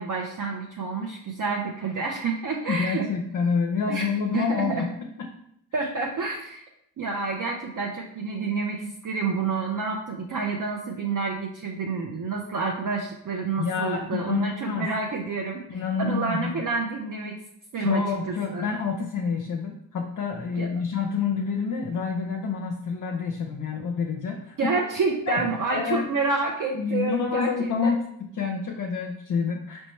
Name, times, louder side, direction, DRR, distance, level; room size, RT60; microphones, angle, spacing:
voice 1, 0.0-3.1 3.9-4.1 4.3-4.8 5.7-6.6 7.0-15.6 16.0-17.4 17.7-18.0 18.3-18.6 20.6-20.7 24.6-27.9, right 4 dB, 40° right, 0 dB, 0.7 m, -28 dB
voice 2, 2.7-4.9 5.2-5.3 5.8-5.9 13.6-14.9 15.7-16.6 17.7-24.7 25.3-26.1 26.8-29.9, left 5 dB, 40° left, 2 dB, 0.6 m, -28 dB
4.2 x 3.3 x 3.1 m, 0.73 s
supercardioid pair, 45°, 50 cm